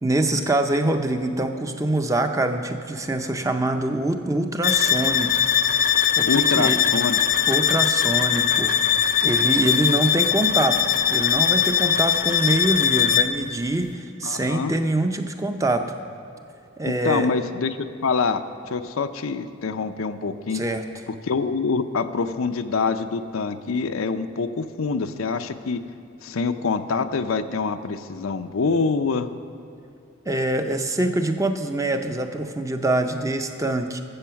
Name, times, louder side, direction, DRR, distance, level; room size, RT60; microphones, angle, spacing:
voice 1, 0.0-5.4 5.7-6.8 7.5-15.9 16.8-17.3 20.5-20.8 30.3-34.0, right 1 dB, 15° right, 6 dB, 0.5 m, -24 dB
sound 1, 4.6-13.4, left 8 dB, 40° left, 0.4 m, -21 dB
voice 2, 6.2-7.2 14.2-14.8 16.8-17.8 18.0-20.6 21.2-25.8 26.2-29.3, left 4 dB, 90° left, 9 dB, 0.6 m, -25 dB
13.5 x 7.7 x 5.7 m, 2.7 s
head